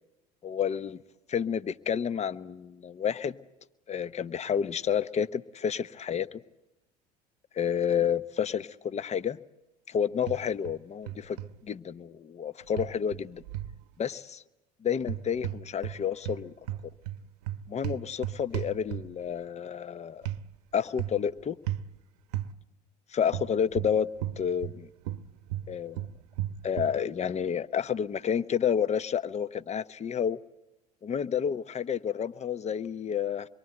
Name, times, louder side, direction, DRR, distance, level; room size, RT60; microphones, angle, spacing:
voice 1, 0.4-1.0 1.3-3.4 3.9-6.4 7.5-9.4 9.9-11.4 11.6-13.4 14.0-14.4 14.8-16.5 17.7-20.2 20.7-21.6 23.1-24.1 24.4-24.9 25.7-26.1 26.6-30.4 31.0-33.5, left 8 dB, 35° left, 0.9 m, -30 dB
sound 1, 10.3-10.8 11.1-11.5 12.8-13.8 15.0-16.0 16.2-19.3 20.3-20.4 21.0-21.3 21.7-21.9 22.3-22.5 23.3-24.8 25.0-27.0, right 12 dB, 75° right, 0.9 m, -35 dB
26.0 x 23.0 x 7.9 m
hypercardioid pair, 70°, 21 cm